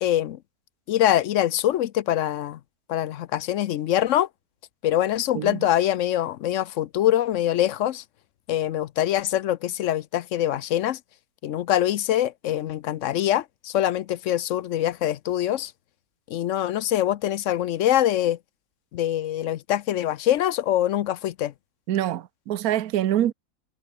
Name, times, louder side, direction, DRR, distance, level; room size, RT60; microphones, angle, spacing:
voice 1, 0.0-0.4 0.9-2.6 2.9-4.3 4.8-8.0 8.5-11.0 11.4-15.7 16.3-18.4 18.9-21.5, left 12 dB, 65° left, 0.8 m, -24 dB
voice 2, 21.9-23.3, right 12 dB, 70° right, 1.3 m, -25 dB
omnidirectional pair, 1.7 m